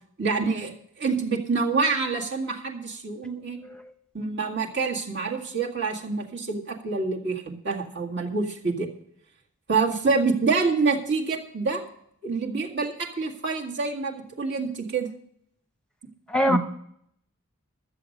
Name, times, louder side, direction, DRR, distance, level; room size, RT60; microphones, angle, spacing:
voice 1, 0.2-3.6 4.1-8.9 9.7-11.8 12.2-15.1 16.5-16.6, right 4 dB, 55° right, -1 dB, 2.0 m, -27 dB
voice 2, 3.2-3.9 16.3-16.6, equal, 5° left, 7 dB, 0.9 m, -26 dB
13.5 x 7.9 x 6.5 m, 0.70 s
head